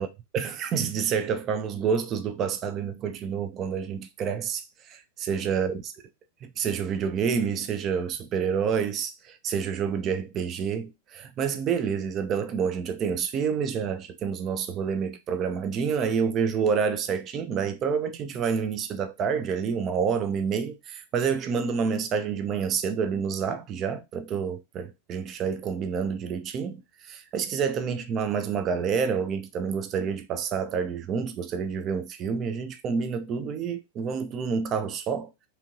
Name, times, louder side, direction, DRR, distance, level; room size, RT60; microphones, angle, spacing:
voice 1, 0.3-4.6 4.9-5.8 6.4-26.8 27.0-35.3, right 6 dB, 35° right, 0.4 m, -28 dB
2.7 x 2.5 x 2.9 m
hypercardioid pair, 110°, 0 cm